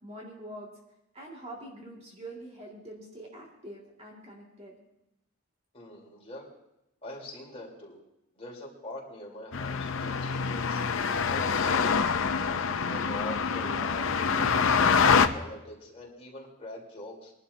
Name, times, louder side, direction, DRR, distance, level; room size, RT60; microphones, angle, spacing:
voice 1, 0.0-0.7 1.1-4.8, right 1 dB, 30° right, -2 dB, 2.1 m, -44 dB
voice 2, 5.7-6.5 7.0-8.0 8.4-12.1 12.8-17.3, left 1 dB, 30° left, -3 dB, 3.6 m, -43 dB
sound 1, 9.5-15.3, left 5 dB, 65° left, 0.6 m, -25 dB
23.0 x 11.5 x 2.7 m, 0.87 s
head